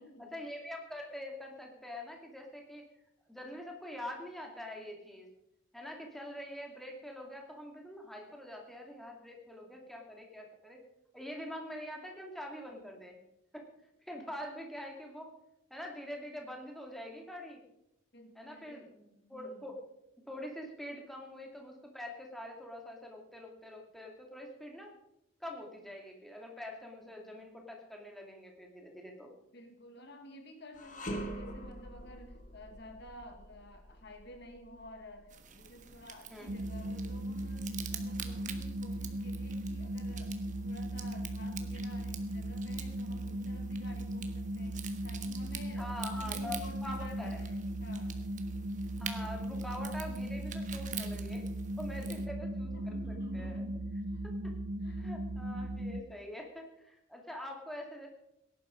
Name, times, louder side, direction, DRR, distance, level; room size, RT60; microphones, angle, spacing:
voice 1, 0.2-2.9 3.3-5.3 5.7-10.8 11.1-13.2 13.5-13.7 14.1-15.3 15.7-17.6 18.4-19.8 20.2-24.9 25.4-29.3 36.3-36.5 45.7-47.4 48.9-51.4 51.8-52.7 53.3-53.6 54.4-54.5 54.9-58.1, left 1 dB, ahead, 0 dB, 2.3 m, -44 dB
voice 2, 18.1-18.9 19.3-19.8 29.5-48.2 51.9-52.4 52.7-54.2 54.8-55.1, left 1 dB, 55° left, 6 dB, 1.4 m, -52 dB
sound 1, 30.7-40.0 40.4-40.6 41.4-42.3, equal, 35° left, 1.6 m, -47 dB
sound 2, 35.3-52.3, right 9 dB, 35° right, 1.2 m, -48 dB
sound 3, 36.5-56.0, right 1 dB, 55° right, 0.7 m, -37 dB
17.5 x 11.0 x 5.1 m, 0.84 s
head